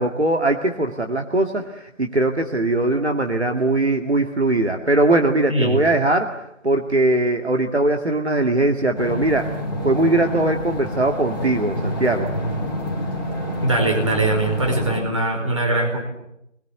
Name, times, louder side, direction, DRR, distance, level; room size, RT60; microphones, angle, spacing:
voice 1, 0.0-6.4 6.6-9.5 9.8-12.3, right 2 dB, 55° right, 4 dB, 2.2 m, -20 dB
voice 2, 5.5-5.8 13.6-16.0, right 2 dB, 25° right, 1 dB, 4.8 m, -21 dB
sound 1, 8.9-15.0, equal, 15° left, 3.7 m, -27 dB
27.0 x 21.5 x 8.2 m, 0.80 s
figure-of-eight pair, 175°, 40 cm